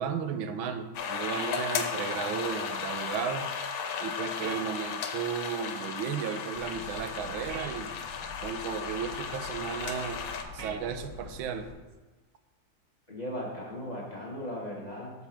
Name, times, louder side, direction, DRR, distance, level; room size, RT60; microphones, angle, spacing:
voice 1, 0.0-3.5 4.0-7.9 8.4-10.2 10.5-11.7, right 7 dB, 90° right, 8 dB, 1.4 m, -34 dB
sound 1, 0.9-10.4, left 6 dB, 90° left, 1.5 m, -35 dB
sound 2, 1.3-1.5 4.4-4.6 7.5-7.7 10.6-10.8, right 5 dB, 60° right, 0.9 m, -40 dB
sound 3, 6.5-11.7, left 3 dB, 55° left, 0.9 m, -46 dB
voice 2, 13.1-15.3, equal, 30° left, -4 dB, 0.9 m, -37 dB
7.0 x 4.1 x 5.7 m, 1.2 s
omnidirectional pair, 2.2 m